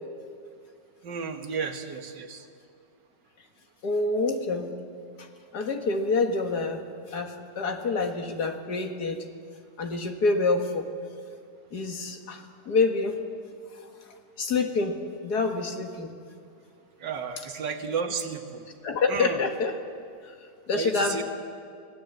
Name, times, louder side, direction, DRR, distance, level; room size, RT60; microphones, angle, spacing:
voice 1, 1.0-2.4 17.0-18.7 19.1-19.4 20.7-21.2, right 5 dB, 75° right, 6 dB, 2.0 m, -32 dB
voice 2, 3.8-4.7 5.2-5.3 5.5-9.2 9.8-10.9 11.7-13.2 14.4-16.1 18.8-19.8 20.2-20.3 20.7-21.2, left 3 dB, 65° left, 5 dB, 2.1 m, -27 dB
24.5 x 17.0 x 8.0 m, 2.3 s
omnidirectional pair, 1.9 m